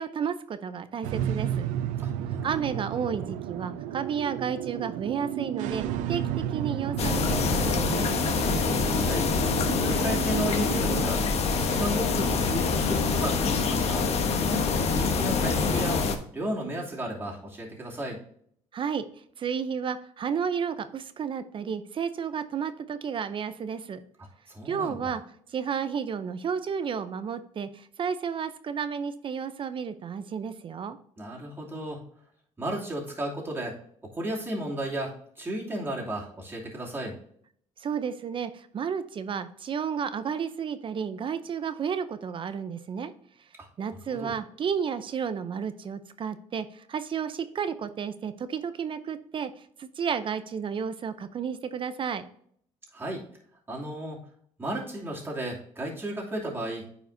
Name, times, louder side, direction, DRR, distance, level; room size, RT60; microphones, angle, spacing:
voice 1, 0.0-1.7 2.4-8.1 18.7-19.0 19.4-24.0 24.6-25.2 25.5-31.0 37.8-43.1 43.8-49.5 49.8-52.2, right 7 dB, 45° right, 12 dB, 0.6 m, -32 dB
sound 1, 1.0-11.0, right 11 dB, 90° right, 0.4 m, -32 dB
voice 2, 2.0-2.5 9.0-9.3 9.8-11.2 11.6-14.1 14.8-16.0 16.3-18.2 24.2-25.1 31.2-32.0 32.6-33.7 34.1-37.1 43.6-43.7 44.1-44.3 52.9-53.2 53.7-54.2 54.6-56.8, right 1 dB, 20° right, -3 dB, 2.7 m, -33 dB
sound 2, 7.0-16.2, left 4 dB, 55° left, 1.1 m, -25 dB
9.2 x 5.0 x 2.6 m, 0.64 s
cardioid pair, 95°, 13 cm